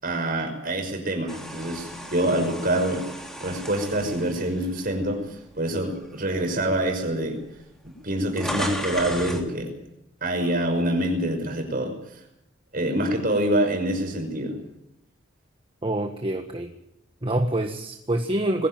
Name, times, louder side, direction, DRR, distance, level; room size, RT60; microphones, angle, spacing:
voice 1, 0.0-3.1 3.4-7.4 7.8-9.7 10.2-12.0 12.7-14.6, right 1 dB, 45° right, 5 dB, 5.7 m, -26 dB
sound 1, 1.3-5.5 6.0-6.2 7.1-7.2 7.4-9.5, equal, 5° left, 3.3 m, -35 dB
voice 2, 15.8-16.7 17.2-18.7, right 1 dB, 25° right, 4 dB, 1.5 m, -26 dB
22.0 x 15.5 x 9.3 m, 0.82 s
head